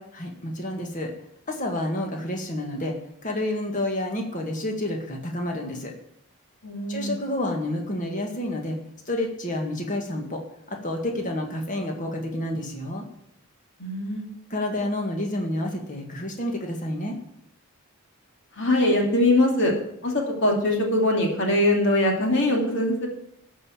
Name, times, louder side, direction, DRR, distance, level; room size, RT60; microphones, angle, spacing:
voice 1, 0.1-1.1 1.5-3.0 3.2-5.9 6.9-8.8 9.1-13.1 14.5-17.2, left 1 dB, 35° left, 2 dB, 2.0 m, -29 dB
voice 2, 6.6-7.1 13.8-14.2 18.6-19.7 20.0-23.1, left 1 dB, 55° left, 0 dB, 2.7 m, -22 dB
13.5 x 5.5 x 8.8 m, 0.75 s
head